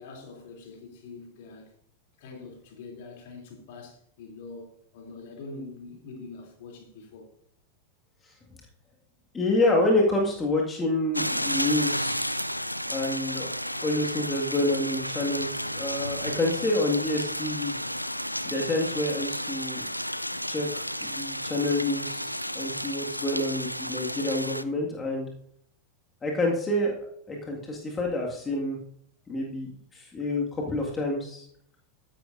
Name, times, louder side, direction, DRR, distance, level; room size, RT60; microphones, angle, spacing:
voice 1, 0.0-1.7 2.2-7.3, left 3 dB, 50° left, 3.0 m, -44 dB
voice 2, 9.3-12.5 12.9-13.5 13.8-17.7 18.4-19.9 20.5-25.3 26.2-28.8 29.3-31.5, left 1 dB, 15° left, 1.9 m, -28 dB
sound 1, 11.1-24.6, equal, 90° left, 0.4 m, -32 dB
15.0 x 10.0 x 2.6 m
figure-of-eight pair, 90°, 0 cm